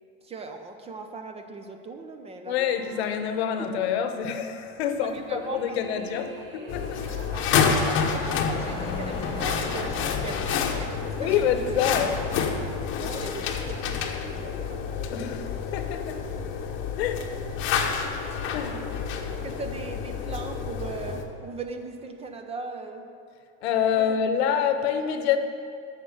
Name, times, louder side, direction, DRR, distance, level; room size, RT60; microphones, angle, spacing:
voice 1, 0.2-2.6 5.0-6.0 7.2-10.9 11.2-11.8 13.0-15.0 18.5-18.8 19.4-23.1 24.0-24.2, right 3 dB, 20° right, 6 dB, 0.6 m, -39 dB
voice 2, 2.5-7.0 11.2-12.2 15.1-16.2 17.0-17.3 18.5-18.8 23.6-25.4, left 8 dB, 80° left, 8 dB, 1.0 m, -27 dB
sound 1, 2.6-4.3 5.0-11.1, right 2 dB, 35° right, 1.2 m, -47 dB
sound 2, 4.6-11.7, left 3 dB, 15° left, 1.5 m, -39 dB
sound 3, 6.7-21.2, left 6 dB, 40° left, 0.9 m, -29 dB
8.8 x 6.4 x 7.2 m, 2.4 s
supercardioid pair, 135°, 32 cm